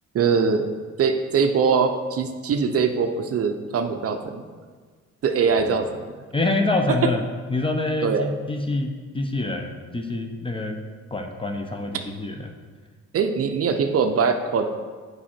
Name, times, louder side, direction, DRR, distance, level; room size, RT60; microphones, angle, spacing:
voice 1, 0.1-0.7 1.0-4.4 5.2-5.9 8.0-8.2 13.1-14.7, right 5 dB, 50° right, 6 dB, 0.6 m, -22 dB
voice 2, 6.3-7.2 7.5-10.8 11.1-12.5, left 2 dB, 15° left, 4 dB, 0.7 m, -26 dB
7.3 x 4.9 x 4.4 m, 1.6 s
cardioid pair, 90°, 30 cm